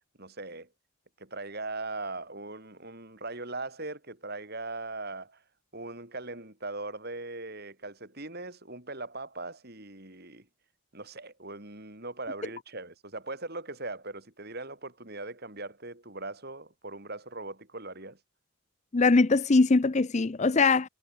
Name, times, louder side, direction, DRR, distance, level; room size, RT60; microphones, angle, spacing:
voice 1, 0.2-0.7 1.2-5.4 5.7-10.5 10.9-18.2, right 2 dB, 45° right, 4.3 m, -40 dB
voice 2, 18.9-20.9, left 3 dB, 30° left, 0.5 m, -22 dB
head